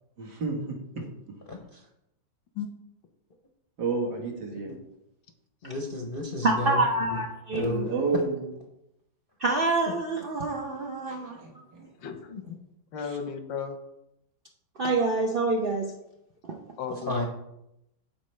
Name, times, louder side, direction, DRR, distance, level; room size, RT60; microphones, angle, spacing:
voice 1, 0.2-1.0 3.8-4.7 7.6-8.5 11.1-11.8, right 4 dB, 65° right, 1 dB, 2.1 m, -31 dB
voice 2, 1.5-1.8 5.6-6.8 7.1-7.2 7.5-7.9 12.3-12.5 17.1-17.3, left 2 dB, 50° left, 1 dB, 0.6 m, -32 dB
voice 3, 6.4-7.7 9.4-11.4 11.8-11.9 14.8-15.9 16.4-16.6, right 2 dB, 90° right, 0 dB, 0.4 m, -27 dB
voice 4, 12.0-12.3 12.9-13.8 16.8-17.3, left 6 dB, 90° left, 7 dB, 1.6 m, -34 dB
13.0 x 4.4 x 3.2 m, 0.84 s
omnidirectional pair, 2.0 m